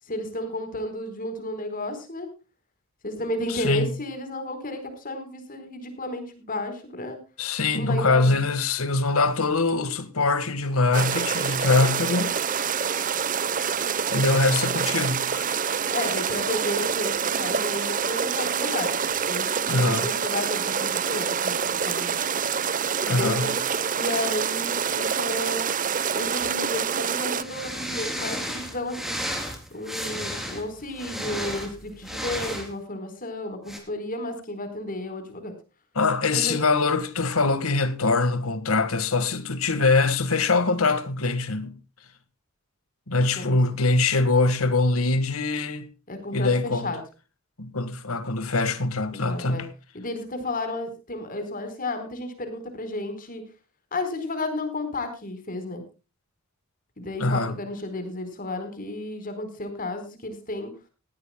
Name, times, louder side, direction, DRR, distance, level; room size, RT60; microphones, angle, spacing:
voice 1, 0.1-2.3 3.0-7.2 7.7-8.4 15.9-18.9 19.3-21.6 21.8-22.2 23.1-23.6 23.9-25.7 26.1-29.3 29.7-35.5 36.3-36.6 43.4-43.6 46.1-47.0 49.1-49.6 49.9-53.4 53.9-55.8 57.0-60.7, left 1 dB, 40° left, 4.4 m, -32 dB
voice 2, 3.5-3.9 7.4-12.3 14.1-15.6 19.7-20.1 23.1-23.5 36.0-41.8 43.1-45.9 46.3-46.9 47.6-49.7 57.2-57.6, left 3 dB, 80° left, 1.7 m, -23 dB
sound 1, 10.9-27.4, right 7 dB, 40° right, 0.9 m, -26 dB
sound 2, 26.4-26.5 27.4-32.7 33.7-33.8, equal, ahead, 3.7 m, -33 dB
19.0 x 16.0 x 2.3 m
head